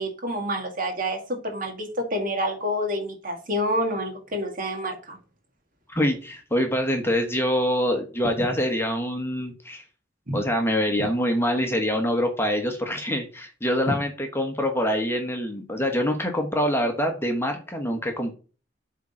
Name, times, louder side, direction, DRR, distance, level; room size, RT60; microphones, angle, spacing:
voice 1, 0.0-5.2 8.4-8.5 10.3-10.4 11.0-11.1, equal, 50° right, 2.0 m, -28 dB
voice 2, 5.9-9.8 10.3-18.3, equal, 15° left, 1.1 m, -25 dB
7.9 x 3.8 x 4.3 m
head